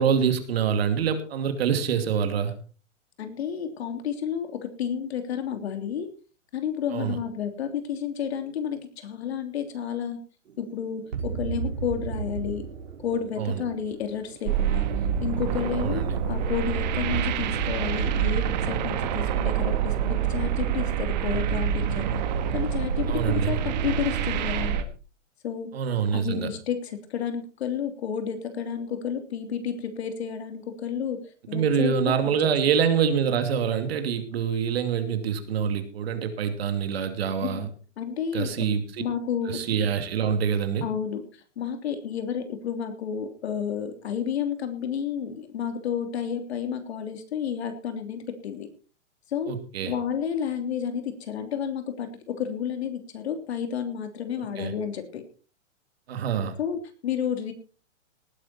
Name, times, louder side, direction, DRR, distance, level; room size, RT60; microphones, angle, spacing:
voice 1, 0.0-2.5 6.9-7.2 13.4-13.6 15.8-16.1 23.1-23.6 25.7-26.5 31.5-37.7 38.3-38.8 39.5-40.8 49.5-49.9 54.6-54.7 56.1-56.5, right 7 dB, 55° right, 9 dB, 2.7 m, -25 dB
voice 2, 3.2-6.1 6.5-10.2 10.6-12.7 13.0-14.9 15.2-22.2 22.5-24.8 25.4-25.7 26.1-31.2 31.5-32.5 37.4-37.7 38.0-38.7 39.0-39.6 40.8-41.2 41.6-48.7 49.3-49.5 49.8-55.2 56.6-57.5, left 8 dB, 55° left, 7 dB, 3.2 m, -31 dB
sound 1, 10.5-21.0, right 6 dB, 75° right, 4.8 m, -37 dB
sound 2, 14.5-24.8, right 8 dB, 35° right, 1.6 m, -26 dB
18.5 x 10.0 x 4.3 m, 0.36 s
hypercardioid pair, 165°, 37 cm